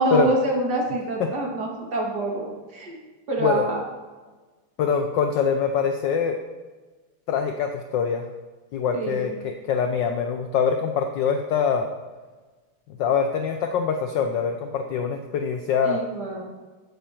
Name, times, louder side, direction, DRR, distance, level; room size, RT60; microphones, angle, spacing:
voice 1, 0.0-3.0 3.3-3.8 8.9-9.3 15.8-16.4, right 2 dB, 50° right, -1 dB, 2.8 m, -26 dB
voice 2, 4.8-6.4 7.3-8.3 8.7-11.9 13.0-16.0, left 6 dB, 65° left, 6 dB, 1.2 m, -24 dB
15.5 x 9.4 x 4.3 m, 1.3 s
omnidirectional pair, 2.4 m